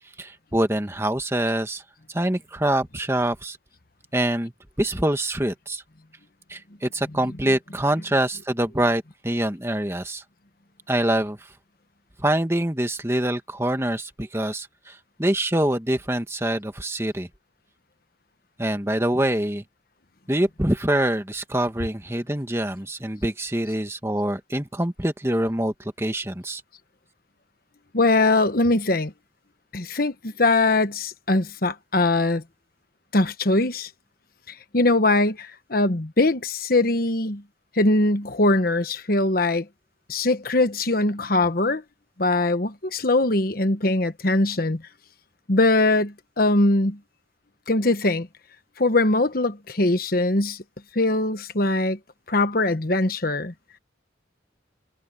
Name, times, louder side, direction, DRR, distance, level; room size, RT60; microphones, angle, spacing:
voice 1, 0.2-1.8 2.1-3.6 4.1-4.5 4.8-5.8 6.5-10.2 10.9-11.4 12.2-17.3 18.6-19.6 20.3-26.6, right 1 dB, 15° right, 1.6 m, -25 dB
voice 2, 27.9-29.1 29.7-32.4 33.1-33.9 34.5-37.4 37.7-39.7 40.1-41.8 42.2-44.8 45.5-47.0 47.7-48.3 48.8-50.6 50.9-52.0 52.3-53.5, left 2 dB, 50° left, 1.3 m, -21 dB
head